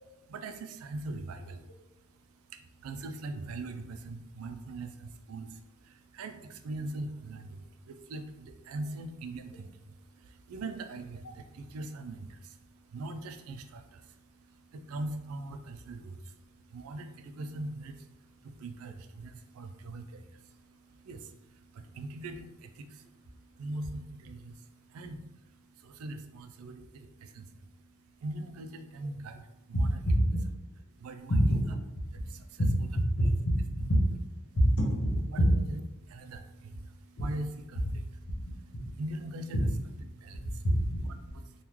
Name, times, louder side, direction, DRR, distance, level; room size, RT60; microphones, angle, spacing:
voice 1, 0.3-1.7 2.5-30.0 30.9-31.6 32.1-32.7 33.2-33.3 34.4-34.6 35.1-35.4 35.7-39.7 40.0-40.7 41.0-41.6, right 2 dB, 80° right, 7 dB, 0.4 m, -42 dB
voice 2, 30.1-30.4 31.3-31.6 32.6-32.7 33.2-33.5 33.9-34.0 34.5-35.5 40.6-41.0, equal, 85° left, -2 dB, 1.0 m, -25 dB
3.0 x 2.3 x 3.6 m, 0.99 s
head